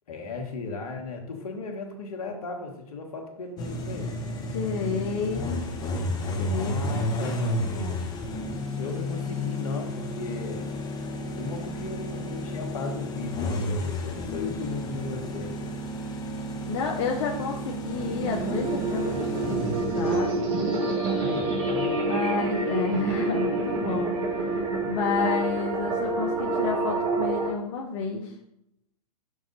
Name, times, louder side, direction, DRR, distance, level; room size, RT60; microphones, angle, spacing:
voice 1, 0.1-4.1 6.4-7.8 8.8-10.7 11.4-15.7 21.1-22.1, left 4 dB, 70° left, 3 dB, 1.6 m, -36 dB
sound 1, 3.6-20.4, left 1 dB, 20° left, 1.0 m, -32 dB
voice 2, 4.5-5.5 6.4-7.4 7.7-8.1 16.7-20.6 22.0-28.3, left 5 dB, 45° left, 1 dB, 0.8 m, -31 dB
sound 2, 17.9-27.5, right 2 dB, 40° right, 1.9 m, -27 dB
6.4 x 3.8 x 5.3 m, 0.78 s
hypercardioid pair, 120°, 19 cm